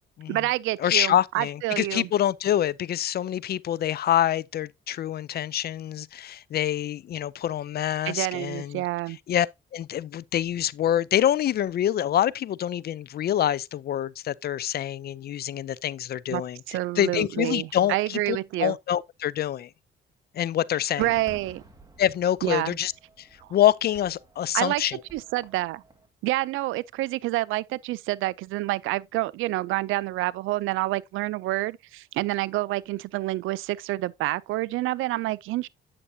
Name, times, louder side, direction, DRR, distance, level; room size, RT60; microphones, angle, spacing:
voice 1, 0.3-2.1 8.1-9.2 16.3-16.4 16.7-18.8 21.0-21.6 22.4-22.8 24.5-25.8 26.2-35.7, right 17 dB, 90° right, 0.4 m, -28 dB
voice 2, 0.8-8.8 9.3-9.5 9.7-19.7 20.3-21.1 22.0-22.9 23.2-25.0, left 11 dB, 55° left, 0.4 m, -26 dB
Fireworks, 21.0-26.1, right 2 dB, 20° right, 1.8 m, -51 dB
8.6 x 6.7 x 2.6 m
cardioid pair, 90°, 20 cm